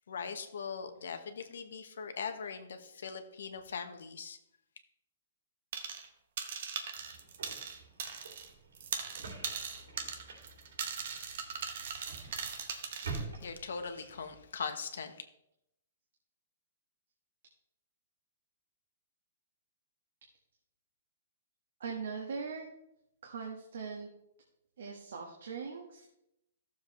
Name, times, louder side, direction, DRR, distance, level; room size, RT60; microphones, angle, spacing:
voice 1, 0.1-4.4 11.4-15.2, left 5 dB, 75° left, 1.1 m, -42 dB
sound 1, 5.7-6.1 6.4-8.5 8.7-13.2, right 6 dB, 45° right, 1.0 m, -39 dB
sound 2, 7.0-14.4, right 4 dB, 85° right, 3.1 m, -47 dB
voice 2, 21.8-22.6 23.2-24.1 24.8-26.1, right 5 dB, 65° right, 1.4 m, -40 dB
14.5 x 7.2 x 3.2 m
hypercardioid pair, 180°, 0 cm